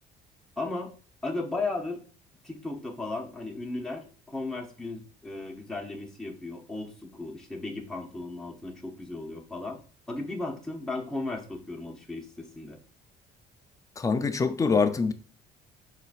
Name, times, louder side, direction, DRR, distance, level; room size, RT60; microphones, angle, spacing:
voice 1, 0.6-0.9 1.2-2.0 2.4-9.8 10.1-12.8, left 2 dB, 5° left, 0.8 m, -35 dB
voice 2, 14.0-15.1, left 4 dB, 20° left, 0.4 m, -24 dB
5.5 x 3.8 x 2.4 m
cardioid pair, 110°, 17 cm